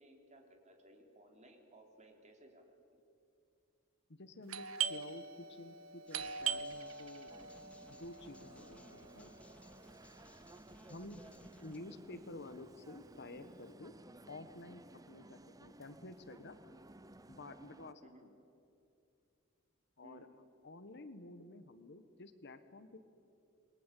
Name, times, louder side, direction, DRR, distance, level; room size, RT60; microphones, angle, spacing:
voice 1, 0.0-3.0 18.0-18.3 20.0-20.3, right 1 dB, 35° right, 3 dB, 3.7 m, -61 dB
voice 2, 4.1-7.3 8.0-9.4 10.9-11.2 11.6-13.9 14.3-16.6 17.3-18.3 20.0-20.3 20.6-23.0, left 2 dB, 55° left, 11 dB, 1.4 m, -51 dB
Doorbell, 4.5-9.9, right 7 dB, 75° right, 1.1 m, -42 dB
sound 1, 6.1-11.8, left 1 dB, 5° left, 1.9 m, -63 dB
sound 2, 7.3-17.9, right 2 dB, 15° right, 0.7 m, -57 dB
28.5 x 22.5 x 8.4 m, 2.6 s
head